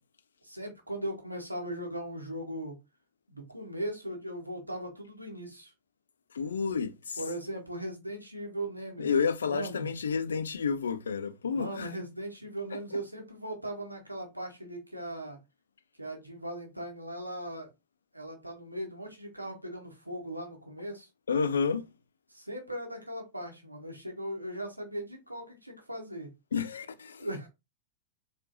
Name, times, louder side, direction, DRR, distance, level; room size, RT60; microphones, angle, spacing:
voice 1, 0.4-2.8 3.3-5.7 7.2-9.9 11.5-15.4 16.0-17.7 18.1-21.1 22.3-26.3 27.2-27.5, right 1 dB, 85° right, 1.1 m, -38 dB
voice 2, 6.3-7.2 9.0-11.9 21.3-21.8 26.5-27.3, left 5 dB, 70° left, 0.4 m, -30 dB
4.3 x 3.1 x 2.5 m
figure-of-eight pair, 90°, 0 cm